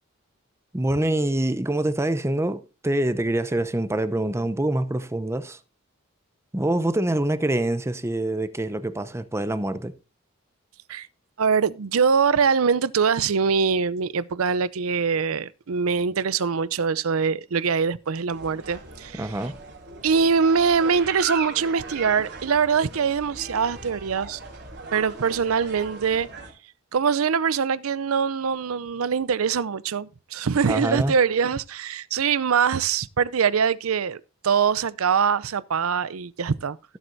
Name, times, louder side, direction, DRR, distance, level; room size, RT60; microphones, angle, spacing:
voice 1, 0.7-5.6 6.5-9.9 19.2-19.6 30.7-31.1, right 1 dB, 15° right, 0.7 m, -25 dB
voice 2, 11.4-19.3 20.0-24.4 24.9-26.3 26.9-36.8, right 6 dB, 85° right, 0.6 m, -23 dB
sound 1, 18.3-26.5, right 3 dB, 55° right, 3.7 m, -38 dB
16.0 x 7.8 x 2.6 m
head